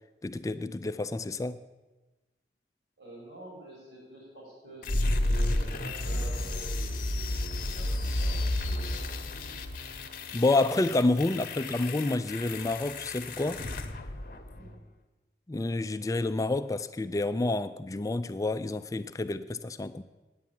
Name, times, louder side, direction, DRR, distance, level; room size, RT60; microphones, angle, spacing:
voice 1, 0.2-1.6 10.3-13.6 15.5-20.0, left 2 dB, 20° left, 12 dB, 0.3 m, -29 dB
voice 2, 3.0-9.6 14.5-14.7, right 2 dB, 65° right, -4 dB, 4.7 m, -47 dB
sound 1, 4.8-14.8, left 1 dB, 50° left, 0.9 m, -32 dB
9.4 x 9.0 x 7.4 m, 1.1 s
head